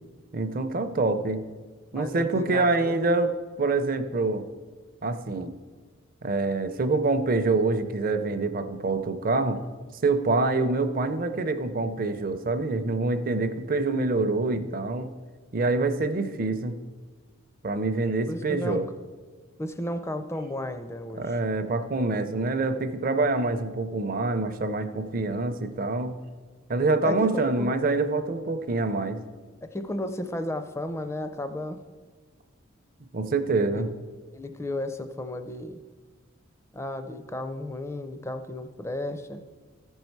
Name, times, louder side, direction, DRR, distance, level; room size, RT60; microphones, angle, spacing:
voice 1, 0.3-1.4 1.9-4.5 5.0-5.5 6.2-9.6 10.0-15.1 15.5-16.7 17.6-18.9 20.4-20.5 21.2-26.2 26.7-29.2 33.1-33.9, right 3 dB, 40° right, 9 dB, 0.5 m, -26 dB
voice 2, 1.9-3.0 18.3-18.8 19.6-21.4 27.0-27.7 29.6-31.8 33.7-33.8 34.3-35.8 36.7-39.4, left 1 dB, 15° left, 9 dB, 0.4 m, -33 dB
14.0 x 5.4 x 4.6 m, 1.4 s
head